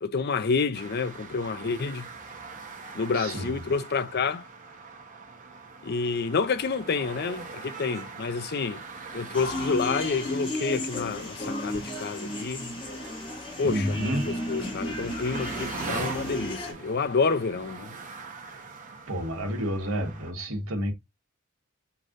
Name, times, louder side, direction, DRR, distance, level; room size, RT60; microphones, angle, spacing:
voice 1, 0.0-2.1 2.9-4.5 5.8-8.8 9.1-12.8 13.6-17.9, left 4 dB, 50° left, 0.5 m, -29 dB
sound 1, 0.7-20.3, right 4 dB, 35° right, 1.1 m, -42 dB
voice 2, 3.1-3.6 13.0-13.2 13.6-14.3 18.5-18.6 19.1-20.9, equal, 75° right, 1.4 m, -30 dB
sound 2, 9.3-16.7, left 1 dB, 25° left, 1.6 m, -34 dB
5.8 x 3.2 x 2.5 m
head